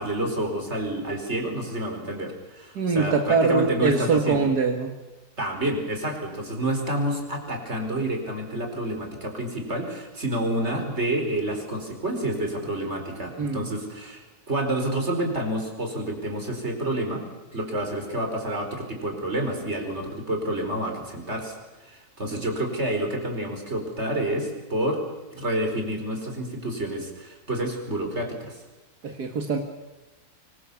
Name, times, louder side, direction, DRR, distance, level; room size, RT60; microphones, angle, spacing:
voice 1, 0.0-4.5 5.4-17.2 17.5-21.6 21.8-25.0 25.3-28.6, right 1 dB, 45° right, 4 dB, 5.2 m, -29 dB
voice 2, 2.8-4.9 13.4-13.7 22.2-22.4 29.0-29.6, right 4 dB, 80° right, 3 dB, 2.4 m, -23 dB
25.0 x 23.5 x 7.2 m, 1.1 s
omnidirectional pair, 1.7 m